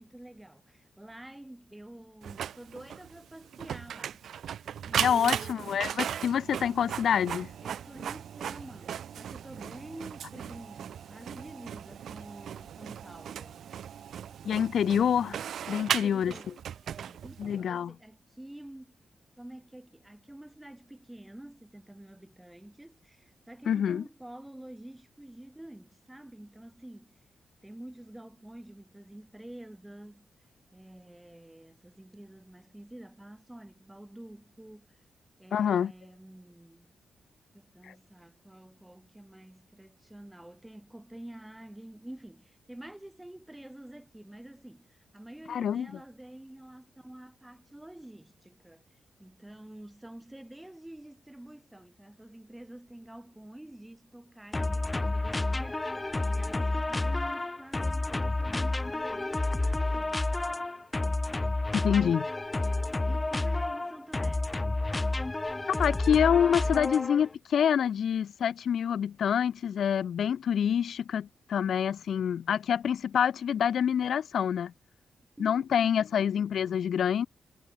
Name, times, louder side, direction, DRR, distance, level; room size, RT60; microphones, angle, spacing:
voice 1, 0.0-4.2 4.8-5.5 7.6-13.6 15.8-16.6 16.8-19.0 19.4-27.2 27.6-30.3 30.7-35.0 35.4-36.9 37.5-48.8 49.2-55.9 56.3-60.3 63.1-64.6 75.4-76.0, right 1 dB, 10° right, 6.0 m, -48 dB
Printer, 2.2-17.6, right 9 dB, 80° right, 2.7 m, -37 dB
voice 2, 5.0-7.5 14.4-15.4 15.7-16.3 17.4-17.9 23.7-24.0 35.5-35.9 37.9-38.0 45.5-45.9 61.7-62.3 65.8-74.7 75.4-77.3, left 8 dB, 75° left, 0.8 m, -27 dB
sound 1, 54.5-67.3, left 2 dB, 20° left, 1.4 m, -30 dB
cardioid pair, 75°, 0 cm